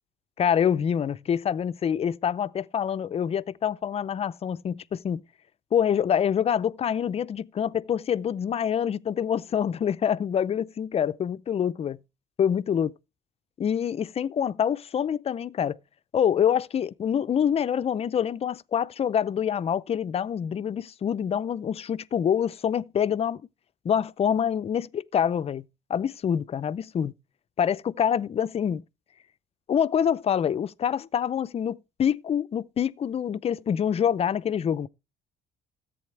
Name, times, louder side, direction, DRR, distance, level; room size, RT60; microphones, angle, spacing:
voice 1, 0.4-5.2 5.7-12.0 12.4-12.9 13.6-15.8 16.1-23.4 23.8-27.1 27.6-28.8 29.7-34.9, left 8 dB, 35° left, 0.6 m, -26 dB
14.0 x 8.4 x 3.3 m
cardioid pair, 110°, 17 cm